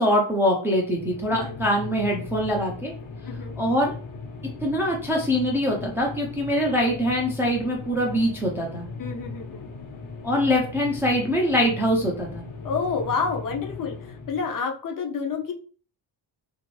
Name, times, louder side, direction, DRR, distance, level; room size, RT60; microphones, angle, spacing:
voice 1, 0.0-2.9 3.6-3.9 4.6-8.9 10.2-12.4, equal, 5° right, -1 dB, 0.4 m, -23 dB
sound 1, 0.7-14.6, left 4 dB, 75° left, 1.0 m, -38 dB
voice 2, 9.0-9.7 12.6-15.5, left 5 dB, 45° left, 2 dB, 0.5 m, -29 dB
3.0 x 2.5 x 3.1 m, 0.41 s
cardioid pair, 175°, 48 cm